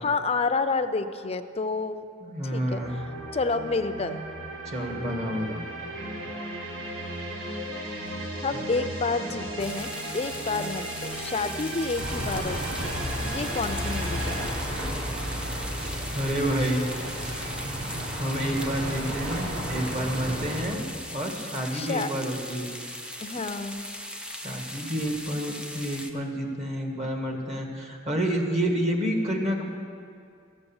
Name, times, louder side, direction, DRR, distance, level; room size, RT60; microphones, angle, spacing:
voice 1, 0.0-2.0 2.5-3.0 3.3-4.2 8.4-14.6 21.7-22.1 23.2-23.9, left 4 dB, 30° left, 9 dB, 0.5 m, -29 dB
voice 2, 2.2-2.9 4.6-5.6 16.1-16.9 18.2-20.8 21.1-22.7 24.3-29.8, equal, 35° right, 2 dB, 1.7 m, -29 dB
sound 1, 2.8-14.5, right 1 dB, 75° right, 1.7 m, -35 dB
sound 2, 9.6-26.1, equal, 5° right, 0.7 m, -39 dB
sound 3, 11.9-20.6, right 1 dB, 55° right, 3.3 m, -33 dB
14.0 x 8.0 x 7.2 m, 2.3 s
head